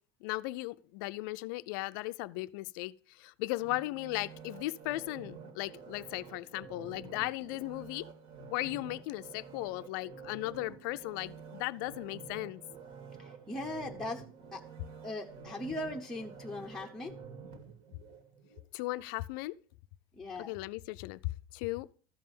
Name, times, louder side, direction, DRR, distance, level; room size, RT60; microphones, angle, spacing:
voice 1, 0.2-8.1 8.5-12.6 18.7-19.6 20.4-21.2 21.5-21.9, left 20 dB, 70° left, 0.5 m, -37 dB
sound 1, 3.6-18.6 19.1-19.2, right 6 dB, 55° right, 2.1 m, -49 dB
voice 2, 13.2-14.2 14.5-14.6 15.0-17.2 20.2-20.6, left 2 dB, 5° left, 0.8 m, -39 dB
13.5 x 5.4 x 6.9 m
cardioid pair, 155°, 11 cm